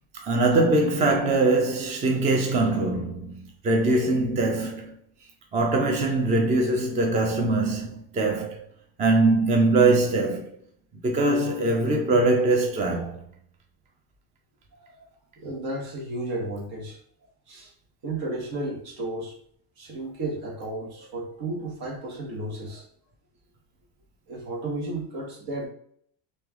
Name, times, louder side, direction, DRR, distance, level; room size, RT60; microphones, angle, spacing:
voice 1, 0.1-5.0 5.5-8.7 9.0-10.6 11.0-13.2, right 2 dB, 20° right, 0.4 m, -22 dB
voice 2, 14.7-15.1 15.4-17.0 17.5-17.7 18.0-19.3 19.8-22.8 24.3-25.7, right 2 dB, 60° right, 1.5 m, -33 dB
3.2 x 3.0 x 3.5 m
cardioid pair, 145°, 42 cm